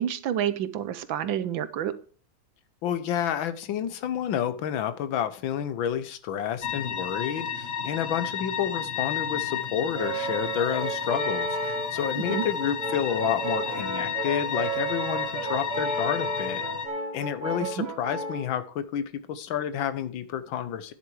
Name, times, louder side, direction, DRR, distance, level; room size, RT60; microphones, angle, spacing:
voice 1, 0.0-2.0 12.2-12.4 17.8-17.9, right 10 dB, 75° right, 14 dB, 1.5 m, -29 dB
voice 2, 2.8-16.6 17.1-20.9, left 9 dB, 75° left, 12 dB, 1.6 m, -30 dB
sound 1, 6.6-16.9, left 7 dB, 45° left, 0.8 m, -32 dB
Brass instrument, 9.9-18.5, right 3 dB, 40° right, 2.6 m, -33 dB
10.5 x 7.3 x 4.8 m, 0.40 s
omnidirectional pair, 2.2 m